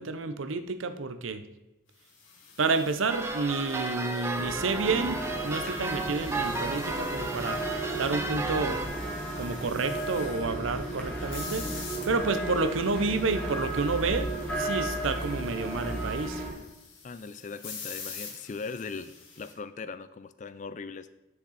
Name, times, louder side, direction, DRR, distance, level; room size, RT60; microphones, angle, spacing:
voice 1, 0.0-1.4 2.6-7.6 7.9-8.8 9.4-11.6 12.1-16.4, right 4 dB, 85° right, 10 dB, 0.7 m, -30 dB
sound 1, 2.1-19.5, left 5 dB, 80° left, 1.9 m, -47 dB
sound 2, 3.1-8.9, right 2 dB, 15° right, 0.6 m, -33 dB
sound 3, 4.3-16.5, right 1 dB, 5° left, 1.5 m, -34 dB
voice 2, 17.0-21.1, left 4 dB, 40° left, 14 dB, 0.4 m, -39 dB
10.0 x 6.6 x 4.2 m, 0.97 s
head